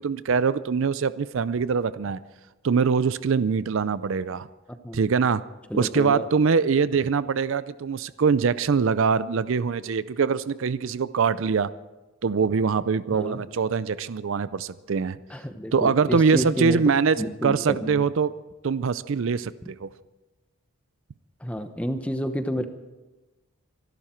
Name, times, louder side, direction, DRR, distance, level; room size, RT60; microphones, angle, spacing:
voice 1, 0.0-2.2 2.6-4.5 4.9-5.4 5.7-11.7 12.2-15.2 15.7-18.3 18.6-19.9, right 5 dB, 60° right, 16 dB, 0.4 m, -23 dB
voice 2, 5.7-6.3 13.1-13.4 15.3-16.8 17.2-18.0 21.4-22.7, equal, 5° left, 8 dB, 0.9 m, -30 dB
25.0 x 12.0 x 4.4 m, 1.1 s
head